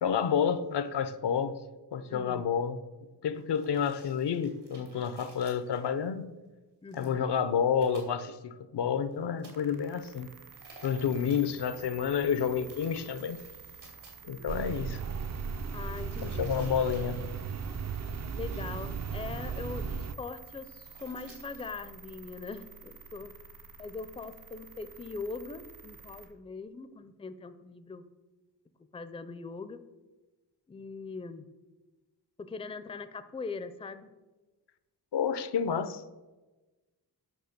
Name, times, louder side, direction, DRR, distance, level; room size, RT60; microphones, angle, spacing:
voice 1, 0.0-1.6 1.9-2.8 3.2-6.3 6.9-10.4 10.8-13.4 14.2-15.0 16.2-17.2 35.1-36.0, left 7 dB, 80° left, 0.7 m, -29 dB
voice 2, 2.1-2.4 6.8-7.2 15.7-16.5 18.3-23.3 23.8-28.0 28.9-29.8 30.7-31.5 32.5-34.1, left 4 dB, 15° left, 0.4 m, -41 dB
sound 1, 3.3-6.1 6.9-7.1 7.5-8.0 9.1-9.5 10.5-11.4 12.5-14.6 15.5-17.4 17.9-18.2 18.4-18.9 19.5-19.6 19.9-20.4 20.8-22.4, right 2 dB, 85° right, 3.1 m, -56 dB
sound 2, 9.5-26.3, right 5 dB, 70° right, 1.9 m, -51 dB
sound 3, 14.5-20.1, right 5 dB, 45° right, 0.4 m, -36 dB
9.3 x 6.0 x 6.6 m
wide cardioid pair, 165°, 40 cm